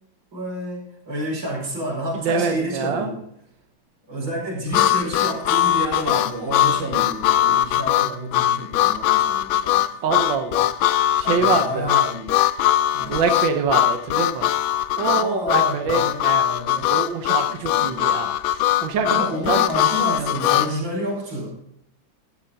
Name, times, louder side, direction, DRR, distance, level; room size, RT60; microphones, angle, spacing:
voice 1, 0.3-3.2 4.1-9.9 11.2-12.3 13.0-13.1 15.1-16.8 17.5-18.3 19.0-21.6, equal, 90° right, -2 dB, 5.5 m, -30 dB
voice 2, 2.1-3.1 10.0-10.7 11.1-11.9 12.9-14.5 15.0-16.4 16.9-20.4, right 5 dB, 70° right, 5 dB, 1.6 m, -25 dB
Harmonica, 4.7-20.7, left 12 dB, 80° left, 1.4 m, -20 dB
14.5 x 11.5 x 2.8 m, 0.75 s
omnidirectional pair, 2.2 m